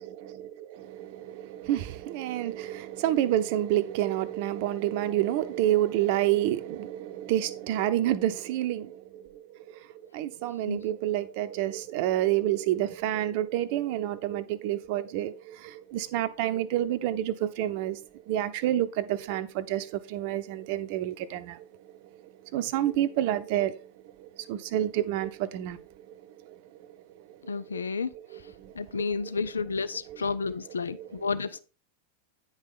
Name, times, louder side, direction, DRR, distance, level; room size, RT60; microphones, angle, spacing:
voice 1, 0.0-9.6 10.1-18.0 18.3-21.7 22.2-23.9 24.2-25.8 26.2-26.6 27.3-27.8 28.3-29.1 30.1-30.2 30.9-31.1, right 13 dB, 45° right, 0.8 m, -29 dB
voice 2, 27.5-28.1 28.8-31.6, left 4 dB, 70° left, 0.4 m, -31 dB
9.6 x 5.6 x 3.9 m
figure-of-eight pair, 90°, 0 cm